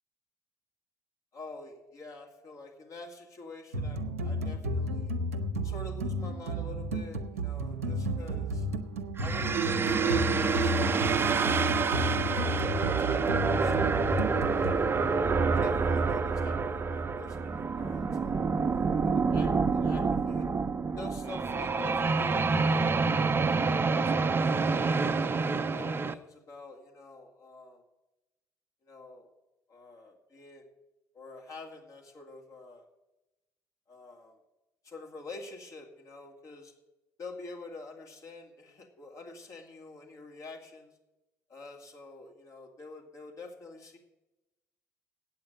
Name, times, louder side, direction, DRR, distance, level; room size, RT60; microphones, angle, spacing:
voice 1, 1.3-5.2 5.6-8.7 9.2-14.0 14.4-14.9 15.5-20.5 21.0-25.1 25.6-27.8 28.8-29.3 29.7-30.7 31.1-32.9 33.9-34.4 34.8-36.7 37.2-40.9 41.5-44.0, left 3 dB, 45° left, 0 dB, 2.2 m, -47 dB
sound 1, 3.7-14.7, equal, 85° right, 0.6 m, -33 dB
sound 2, 9.2-26.1, right 4 dB, 30° right, 0.7 m, -27 dB
8.6 x 8.0 x 9.0 m, 0.99 s
hypercardioid pair, 55°, 8 cm